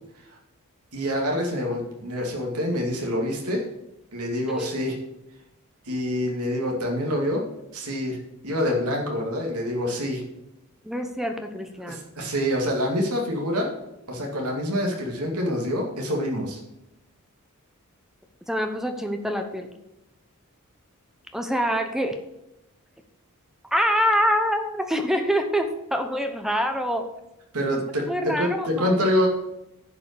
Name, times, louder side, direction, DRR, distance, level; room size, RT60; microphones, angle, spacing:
voice 1, 0.9-3.7 4.1-5.0 5.8-7.4 7.7-8.2 8.4-10.2 11.8-13.7 14.1-16.6 27.5-29.3, equal, 85° right, 1 dB, 2.4 m, -26 dB
voice 2, 10.8-12.0 18.5-19.7 21.3-22.2 23.6-27.1 27.7-27.8 28.1-29.0, equal, ahead, 6 dB, 0.8 m, -25 dB
10.5 x 5.5 x 6.8 m, 0.89 s
head